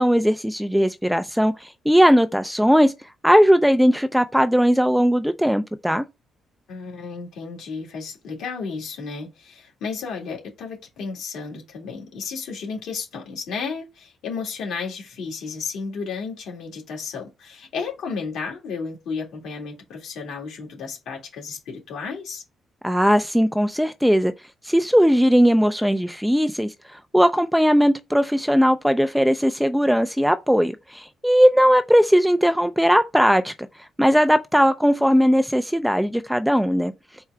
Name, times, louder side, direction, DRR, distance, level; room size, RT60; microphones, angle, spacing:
voice 1, 0.0-2.9 3.2-6.1 22.8-24.3 24.6-26.7 27.1-33.5 34.0-36.9, equal, ahead, 0.3 m, -18 dB
voice 2, 6.7-22.4, left 5 dB, 80° left, 2.0 m, -33 dB
4.4 x 2.3 x 4.7 m
cardioid pair, 90°, 0 cm